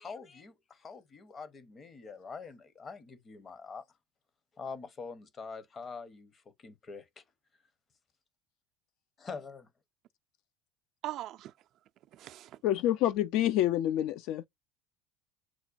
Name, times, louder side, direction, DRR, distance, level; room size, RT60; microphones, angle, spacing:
voice 1, 0.0-3.8 4.5-7.2 9.2-9.7, left 5 dB, 35° left, 0.7 m, -45 dB
voice 2, 11.0-11.5 12.1-12.6, right 14 dB, 60° right, 0.3 m, -40 dB
voice 3, 12.6-14.5, left 13 dB, 65° left, 0.3 m, -27 dB
5.9 x 2.2 x 2.4 m
hypercardioid pair, 80°, 0 cm